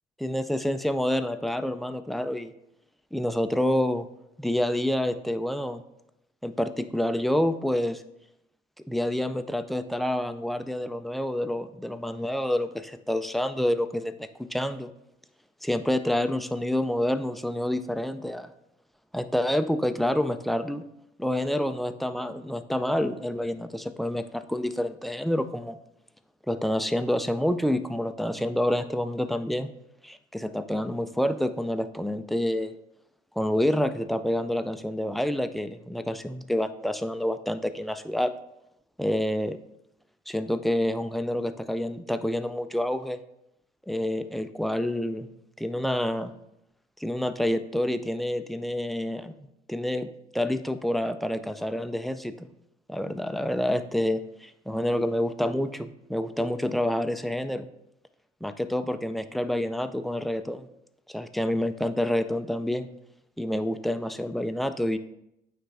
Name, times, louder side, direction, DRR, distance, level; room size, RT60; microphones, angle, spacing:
voice 1, 0.2-2.5 3.1-4.1 4.4-5.8 6.4-8.0 8.9-14.9 15.6-18.5 19.1-20.8 21.2-25.8 26.5-29.7 30.0-32.7 33.4-38.3 39.0-39.6 40.3-43.2 43.9-45.3 45.6-46.3 47.0-50.1 50.3-52.5 52.9-57.7 58.4-60.7 61.1-62.9 63.4-65.0, left 1 dB, ahead, 9 dB, 0.3 m, -28 dB
9.0 x 3.4 x 3.3 m, 0.82 s
cardioid pair, 110°, 17 cm